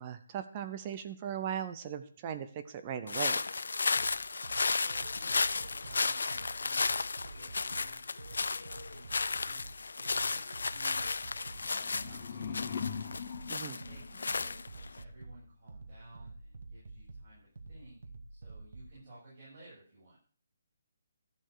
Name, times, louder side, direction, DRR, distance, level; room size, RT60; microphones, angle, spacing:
voice 1, 0.0-3.4 13.5-13.8, right 9 dB, 20° right, 10 dB, 0.7 m, -38 dB
sound 1, 3.1-15.0, left 4 dB, 80° left, 0.6 m, -34 dB
sound 2, 4.0-19.0, right 3 dB, 60° right, 2.1 m, -49 dB
voice 2, 4.7-6.8 7.3-8.0 8.3-9.7 9.9-12.6 13.8-18.0 18.3-20.2, right 2 dB, 35° right, -8 dB, 7.4 m, -55 dB
sound 3, 11.5-14.6, left 7 dB, 25° left, 1.1 m, -41 dB
13.5 x 7.8 x 6.6 m, 0.43 s
hypercardioid pair, 175°, 0 cm